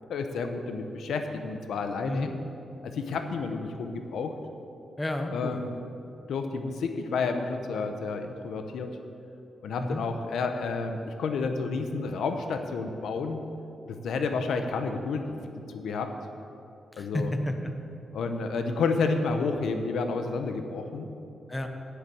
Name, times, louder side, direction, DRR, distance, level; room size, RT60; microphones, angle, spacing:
voice 1, 0.1-2.3 2.8-4.3 5.3-5.8 6.3-8.9 9.6-13.4 13.9-15.3 15.7-16.1 17.0-17.3 18.1-21.1, left 4 dB, 80° left, 6 dB, 0.8 m, -30 dB
voice 2, 5.0-5.6 9.8-10.0 16.9-17.7 21.5-21.7, left 1 dB, 10° left, 5 dB, 0.7 m, -31 dB
8.1 x 7.2 x 8.6 m, 2.7 s
wide cardioid pair, 155°, 0 cm